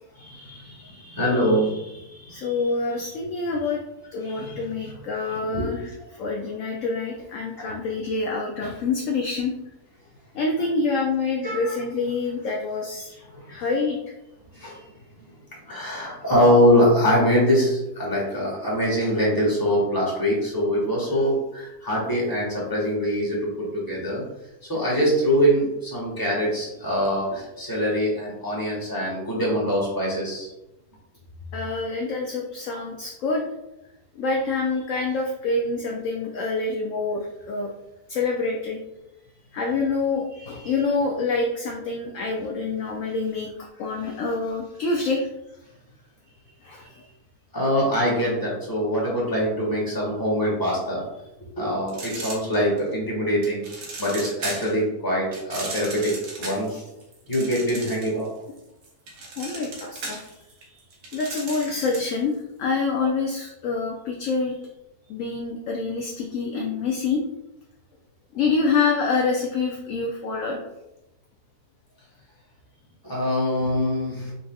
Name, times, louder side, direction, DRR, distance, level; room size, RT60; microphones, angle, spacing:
voice 1, 0.1-2.4 4.2-4.9 5.3-5.7 7.6-7.7 11.4-11.8 13.3-13.4 14.5-14.8 15.7-24.2 24.7-30.5 40.6-40.7 47.5-51.0 51.6-53.6 54.0-56.8 57.3-58.3 73.0-74.3, equal, 15° left, -5 dB, 1.4 m, -23 dB
voice 2, 2.3-3.8 4.1-9.5 10.3-13.1 13.5-14.0 31.5-33.4 34.2-37.7 38.1-38.8 39.5-43.5 43.8-45.3 46.7-46.8 59.4-60.2 61.1-64.6 65.1-67.2 68.3-70.6, left 4 dB, 70° left, 0 dB, 0.8 m, -26 dB
sound 1, 51.9-52.9 53.4-54.8 55.3-58.3 58.6-62.2, right 3 dB, 90° right, 1.6 m, -36 dB
4.7 x 3.9 x 2.3 m, 0.92 s
omnidirectional pair, 1.7 m